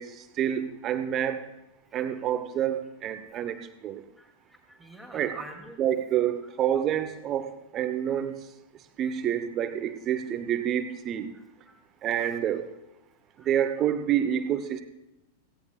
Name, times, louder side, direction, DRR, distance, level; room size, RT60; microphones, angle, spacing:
voice 1, 0.0-1.4 1.9-4.0 5.1-5.4 5.8-7.5 7.7-8.4 9.0-11.3 12.0-12.7 13.4-14.8, right 10 dB, 30° right, 10 dB, 0.9 m, -28 dB
voice 2, 4.2-5.8 11.7-11.8 13.4-13.5, equal, ahead, 3 dB, 2.5 m, -47 dB
17.0 x 16.5 x 2.4 m, 0.95 s
figure-of-eight pair, 90°, 0 cm